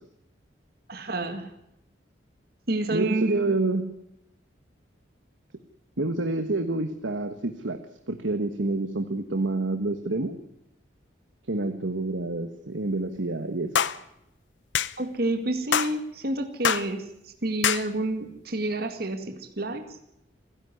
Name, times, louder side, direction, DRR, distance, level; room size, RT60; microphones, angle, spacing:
voice 1, 0.9-1.5 2.7-3.6 15.0-20.0, right 2 dB, 55° right, 6 dB, 2.1 m, -29 dB
voice 2, 2.9-3.9 6.0-10.4 11.5-13.8, right 2 dB, 90° right, 8 dB, 1.5 m, -28 dB
sound 1, 13.8-14.0 14.7-14.9 15.7-15.9 16.6-16.9 17.6-17.9, left 8 dB, 80° left, 0.8 m, -24 dB
29.0 x 11.0 x 9.7 m, 0.82 s
head